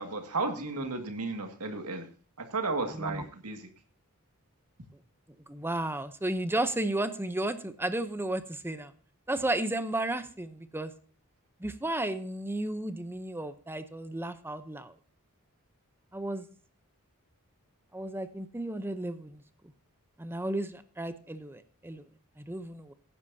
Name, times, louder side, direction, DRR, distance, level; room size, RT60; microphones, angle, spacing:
voice 1, 0.0-2.1 2.4-3.7, right 3 dB, 85° right, 5 dB, 2.0 m, -33 dB
voice 2, 2.9-3.3 5.5-8.9 9.3-10.9 11.6-14.9 16.1-16.5 17.9-19.4 20.2-22.0 22.4-22.9, right 1 dB, 10° right, 11 dB, 0.7 m, -33 dB
17.0 x 9.9 x 2.7 m, 0.40 s
head